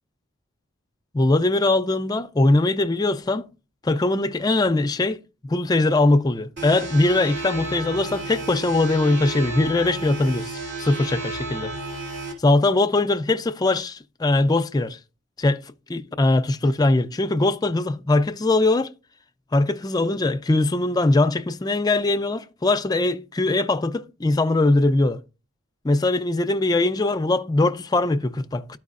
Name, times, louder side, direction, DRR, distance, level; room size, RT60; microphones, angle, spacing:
voice 1, 1.1-3.5 3.8-11.7 12.4-15.0 15.4-15.6 15.9-18.9 19.5-25.2 25.8-28.8, left 2 dB, 20° left, 0.3 m, -21 dB
sound 1, 6.6-12.3, right 3 dB, 60° right, 2.1 m, -32 dB
12.5 x 4.6 x 2.4 m
head